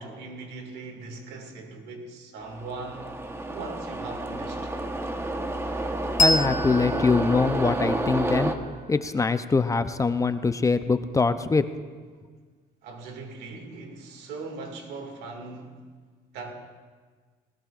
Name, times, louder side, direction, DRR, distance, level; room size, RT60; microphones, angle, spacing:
voice 1, 0.0-3.1 3.4-4.7 12.8-15.8 16.3-16.5, right 3 dB, 80° right, 3 dB, 2.1 m, -39 dB
sound 1, 2.4-8.5, right 1 dB, 15° right, 1.0 m, -30 dB
voice 2, 6.0-8.5 8.9-11.7, left 4 dB, 20° left, 11 dB, 0.5 m, -23 dB
Bell, 6.2-9.3, left 1 dB, 45° left, 1.2 m, -29 dB
19.5 x 19.0 x 2.5 m, 1.5 s
cardioid pair, 110°, 17 cm